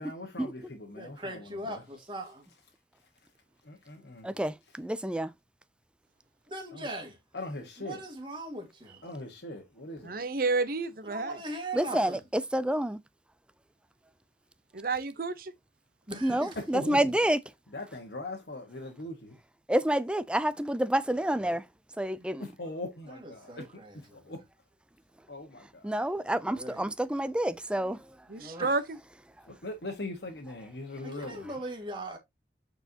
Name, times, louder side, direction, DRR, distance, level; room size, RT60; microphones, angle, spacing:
voice 1, 0.0-1.8 3.6-4.3 4.7-4.8 6.7-6.9 7.3-8.0 9.0-10.2 16.5-17.2 17.7-19.4 22.4-23.8 24.1-24.4 25.3-26.1 29.4-31.5, left 2 dB, 70° left, 1.4 m, -41 dB
voice 2, 0.9-2.4 6.5-7.2 7.8-9.0 11.0-12.2 16.1-16.6 23.5-23.9 26.4-26.8 28.4-28.8 31.0-32.2, right 1 dB, 25° right, 1.8 m, -39 dB
voice 3, 4.2-5.3 11.7-13.0 16.2-17.4 19.7-21.6 22.0-22.4 25.8-28.0, right 1 dB, 5° right, 0.3 m, -28 dB
voice 4, 10.0-11.4 14.7-15.5 28.3-28.8, right 3 dB, 50° right, 0.8 m, -30 dB
8.0 x 4.5 x 2.8 m
head